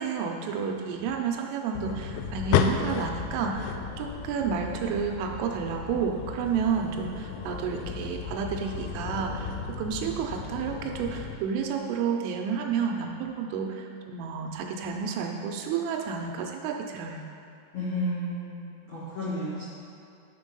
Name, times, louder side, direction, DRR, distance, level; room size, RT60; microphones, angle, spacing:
voice 1, 0.0-9.5 9.8-17.2, right 6 dB, 80° right, 2 dB, 3.1 m, -30 dB
sound 1, 1.8-11.4, left 8 dB, 90° left, 3.2 m, -33 dB
voice 2, 17.7-19.6, equal, 65° left, -12 dB, 1.8 m, -32 dB
11.0 x 4.4 x 5.3 m, 2.7 s
omnidirectional pair, 5.9 m